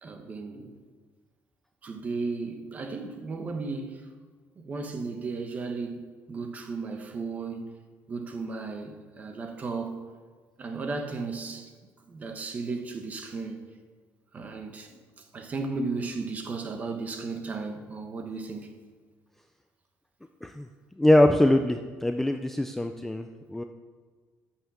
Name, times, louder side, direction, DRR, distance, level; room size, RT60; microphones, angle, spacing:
voice 1, 0.0-0.7 1.8-4.0 4.6-7.6 8.1-10.0 10.6-11.7 12.1-13.6 14.3-14.9 15.3-18.8, right 4 dB, 25° right, 1.1 m, -35 dB
voice 2, 21.0-23.6, left 1 dB, 5° left, 0.3 m, -23 dB
11.0 x 5.8 x 7.2 m
cardioid pair, 170°, 6 cm